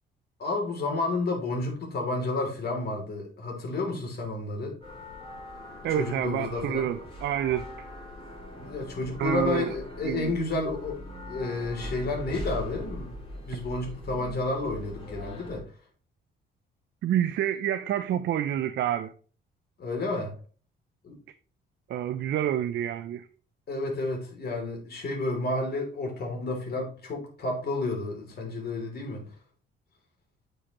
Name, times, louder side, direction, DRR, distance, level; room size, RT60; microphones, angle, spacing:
voice 1, 0.4-4.8 5.9-6.8 8.6-11.0 11.2-15.6 19.8-20.3 21.0-21.1 23.7-29.2, left 2 dB, 55° left, 3.2 m, -31 dB
sound 1, 4.8-15.6, left 1 dB, 25° left, 3.3 m, -41 dB
voice 2, 5.8-7.9 9.2-9.7 10.0-10.4 17.0-19.1 21.9-23.3, right 10 dB, 65° right, 0.5 m, -28 dB
8.6 x 5.0 x 3.0 m
cardioid pair, 90°, 20 cm